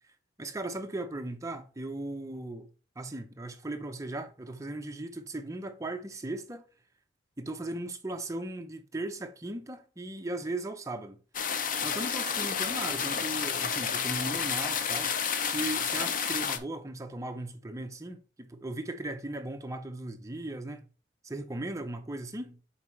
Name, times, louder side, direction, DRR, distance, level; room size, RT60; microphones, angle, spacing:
voice 1, 0.4-2.7 3.0-6.6 7.4-11.2 11.8-15.1 15.4-20.9 21.2-22.6, right 2 dB, 15° right, 0.6 m, -37 dB
sound 1, 11.3-16.6, left 7 dB, 45° left, 0.6 m, -30 dB
7.2 x 4.3 x 3.1 m
head